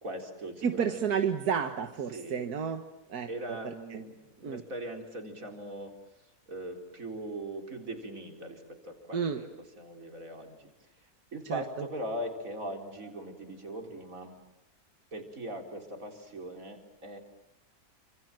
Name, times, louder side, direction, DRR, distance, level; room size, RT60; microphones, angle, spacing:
voice 1, 0.0-1.0 2.1-2.5 3.3-9.5 9.8-10.7 11.0-14.4 15.1-17.2, right 1 dB, 60° right, 3 dB, 4.5 m, -40 dB
voice 2, 0.6-2.8 3.1-3.3 3.9-4.0 4.4-4.6 9.1-9.4 11.5-11.6, right 7 dB, 90° right, 7 dB, 1.9 m, -30 dB
29.5 x 26.5 x 7.6 m, 0.90 s
omnidirectional pair, 1.6 m